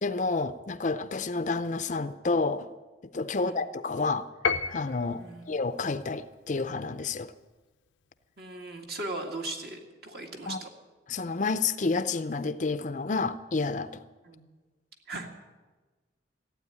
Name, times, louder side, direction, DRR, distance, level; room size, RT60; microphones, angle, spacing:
voice 1, 0.0-2.7 3.1-4.2 4.7-7.3 10.5-10.6 11.1-14.0, left 3 dB, 40° left, 12 dB, 0.5 m, -29 dB
Piano, 4.4-5.3, left 5 dB, 90° left, 0.7 m, -30 dB
voice 2, 8.4-10.7 14.2-14.4 15.1-15.3, right 2 dB, 55° right, 2 dB, 2.1 m, -38 dB
15.0 x 8.9 x 9.6 m, 1.3 s
head